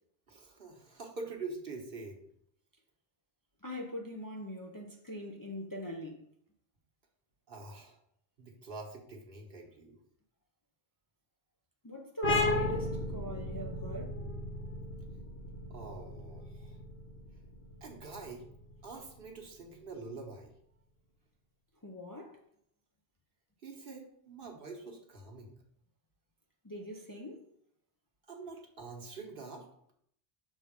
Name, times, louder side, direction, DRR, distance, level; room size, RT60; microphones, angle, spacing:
voice 1, 0.3-2.3 7.5-8.0 8.4-10.0 15.7-16.8 17.8-18.4 18.8-20.5 23.6-25.5 28.3-29.7, right 3 dB, 60° right, 1.4 m, -45 dB
voice 2, 3.6-6.3 11.8-14.2 21.8-22.4 26.6-27.5, equal, 25° left, 0.6 m, -42 dB
sound 1, 12.2-19.5, left 2 dB, 85° left, 1.6 m, -35 dB
6.2 x 3.8 x 5.1 m
omnidirectional pair, 1.0 m